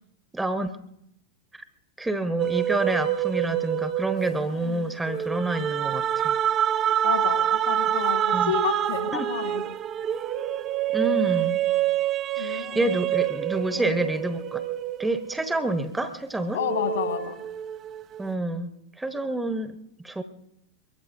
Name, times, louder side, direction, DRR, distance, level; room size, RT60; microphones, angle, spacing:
voice 1, 0.3-0.8 1.5-1.6 2.0-6.4 8.3-8.5 9.1-9.3 10.9-11.6 12.4-14.6 15.0-16.6 18.2-18.7 19.0-19.8 20.0-20.2, right 2 dB, 5° right, 9 dB, 1.0 m, -28 dB
sound 1, 2.4-16.1 16.6-18.2, right 11 dB, 30° right, 0.5 m, -27 dB
voice 2, 4.4-5.0 7.0-9.6 12.4-12.9 13.8-13.9 16.5-17.4, left 7 dB, 65° left, 4 dB, 2.3 m, -30 dB
23.5 x 22.5 x 2.7 m, 0.80 s
figure-of-eight pair, 90°, 0 cm